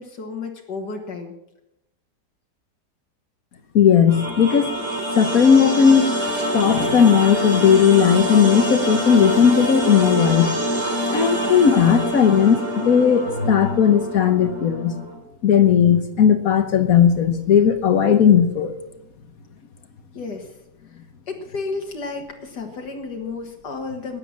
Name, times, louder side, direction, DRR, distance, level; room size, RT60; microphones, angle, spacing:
voice 1, 0.0-1.3 20.1-20.5 21.3-24.2, left 4 dB, 75° left, 2 dB, 2.2 m, -32 dB
voice 2, 3.7-4.7 5.2-10.6 11.1-15.0 15.4-18.8, left 7 dB, 60° left, 9 dB, 1.4 m, -16 dB
sound 1, 4.1-15.1, equal, 40° right, 3.6 m, -25 dB
13.0 x 9.8 x 7.4 m, 0.82 s
omnidirectional pair, 1.8 m